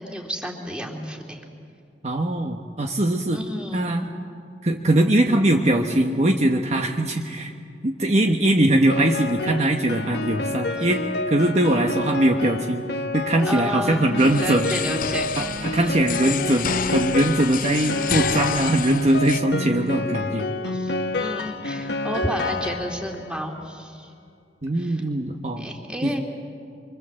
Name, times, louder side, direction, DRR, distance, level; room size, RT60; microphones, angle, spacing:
voice 1, 0.0-1.4 3.3-3.9 13.4-14.0 14.4-15.3 15.6-15.9 16.2-16.4 20.6-20.9 21.2-24.1 24.8-25.0 25.6-26.2, equal, 5° right, 1 dB, 2.7 m, -31 dB
voice 2, 2.0-3.4 3.7-4.0 4.6-7.5 7.8-12.8 13.1-14.7 15.4-20.5 24.6-25.7 26.0-26.2, right 1 dB, 40° right, 2 dB, 1.3 m, -21 dB
Piano, 8.9-23.3, left 2 dB, 70° left, 1.3 m, -29 dB
sound 1, 14.2-19.4, left 8 dB, 50° left, 0.6 m, -30 dB
26.0 x 24.5 x 7.7 m, 2.4 s
head